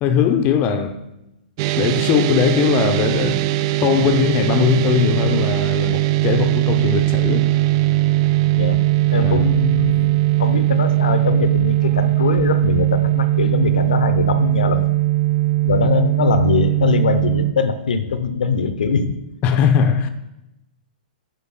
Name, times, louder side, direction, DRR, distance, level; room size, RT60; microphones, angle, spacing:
voice 1, 0.0-1.0 1.8-3.5 3.8-7.5 9.2-9.5 19.4-20.1, left 7 dB, 30° left, 0.6 m, -19 dB
sound 1, 1.6-17.5, right 17 dB, 40° right, 0.3 m, -19 dB
voice 2, 9.1-10.1 10.4-14.9 15.6-19.1, left 5 dB, 65° left, 0.7 m, -21 dB
10.0 x 5.1 x 4.0 m
figure-of-eight pair, 110°, 5 cm